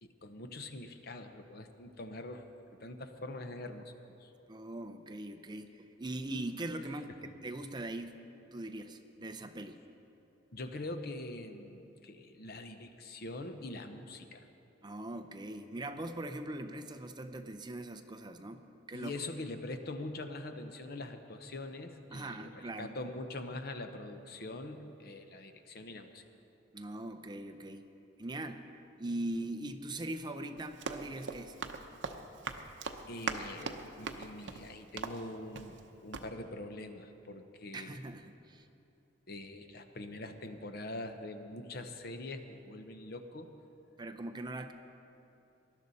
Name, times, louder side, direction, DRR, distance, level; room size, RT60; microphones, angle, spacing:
voice 1, 0.0-2.5 2.8-3.9 4.2-4.3 10.5-14.5 18.9-26.2 33.1-38.0 39.3-43.5, left 2 dB, 55° left, 7 dB, 0.8 m, -43 dB
voice 2, 4.5-8.2 8.5-9.8 14.8-19.1 22.1-22.9 26.7-27.9 28.2-28.7 29.0-31.6 37.7-38.7 44.0-44.7, right 1 dB, 25° right, 8 dB, 0.6 m, -41 dB
Run, 30.6-35.9 36.1-36.3, right 4 dB, 70° right, 0.8 m, -41 dB
19.0 x 12.0 x 4.1 m, 2.8 s
head